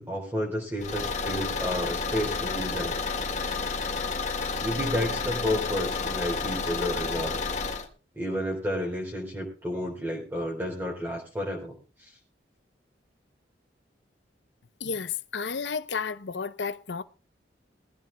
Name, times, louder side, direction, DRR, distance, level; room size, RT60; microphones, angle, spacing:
voice 1, 0.0-3.0 4.6-7.4 8.2-12.1, equal, 15° right, 3.8 m, -31 dB
Car / Engine, 0.8-7.9, left 4 dB, 40° left, 1.9 m, -30 dB
voice 2, 14.8-17.0, left 5 dB, 85° left, 0.7 m, -32 dB
21.5 x 15.5 x 2.3 m
head